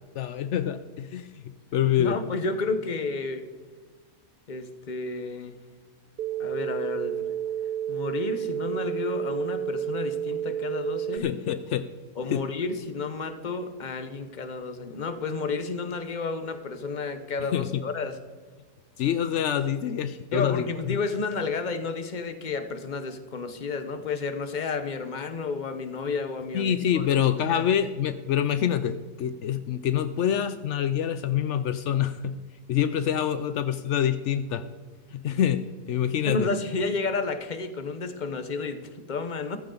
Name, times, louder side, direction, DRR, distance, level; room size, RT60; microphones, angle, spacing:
voice 1, 0.1-1.3 1.7-2.2 11.1-11.9 12.3-12.4 17.5-17.8 19.0-21.0 26.5-32.4 32.7-34.6 35.1-36.5, left 9 dB, 80° left, 11 dB, 0.6 m, -26 dB
voice 2, 2.0-3.4 4.5-5.6 6.4-7.2 7.9-11.3 12.2-18.1 20.3-27.0 27.5-27.6 36.2-39.6, left 4 dB, 35° left, 9 dB, 0.9 m, -31 dB
sound 1, 6.2-11.2, right 10 dB, 70° right, 1.0 m, -31 dB
14.5 x 14.5 x 3.9 m, 1.5 s
omnidirectional pair, 1.9 m